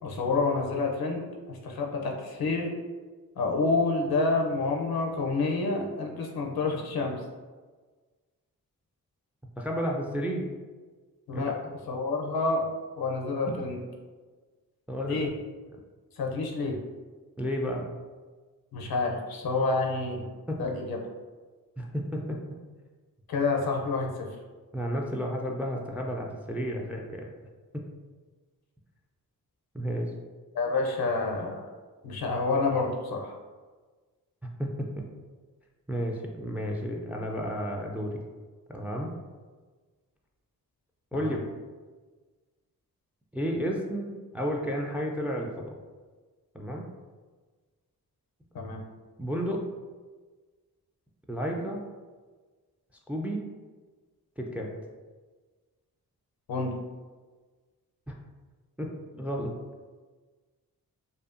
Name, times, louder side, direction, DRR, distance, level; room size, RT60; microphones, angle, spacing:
voice 1, 0.0-1.2 1.5-2.7 3.4-7.2 11.3-11.5 11.9-12.6 13.0-13.8 15.0-15.3 16.2-16.8 18.7-20.3 20.6-21.0 23.3-24.3 30.5-31.6 32.0-33.3 41.1-41.4 48.5-48.8 56.5-56.7, left 3 dB, 70° left, 0 dB, 0.6 m, -28 dB
voice 2, 9.6-10.5 11.3-11.7 14.9-15.3 17.4-17.9 20.5-20.6 21.8-22.4 24.7-27.3 27.7-27.8 29.7-30.1 34.6-35.0 35.9-38.2 38.7-39.1 41.1-41.4 43.3-45.8 46.5-46.9 48.6-48.7 49.2-49.6 51.3-51.8 53.1-53.4 54.4-54.7 58.1-58.2 58.8-58.9 59.2-59.5, equal, 5° right, 0 dB, 0.3 m, -32 dB
2.6 x 2.3 x 2.4 m, 1.4 s
supercardioid pair, 40°, 38 cm